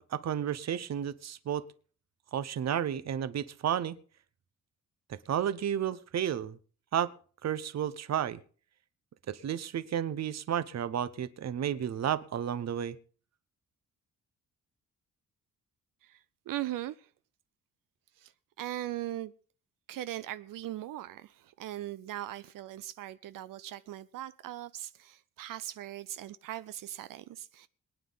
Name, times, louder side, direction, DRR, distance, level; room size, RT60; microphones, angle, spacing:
voice 1, 0.0-1.7 2.3-4.0 5.1-6.6 6.9-7.1 7.4-8.4 9.3-13.0, right 9 dB, 55° right, 0.8 m, -32 dB
voice 2, 16.0-17.1 18.2-18.3 18.6-19.3 19.9-27.7, right 13 dB, 90° right, 0.6 m, -39 dB
22.5 x 9.6 x 4.0 m
cardioid pair, 115°, 32 cm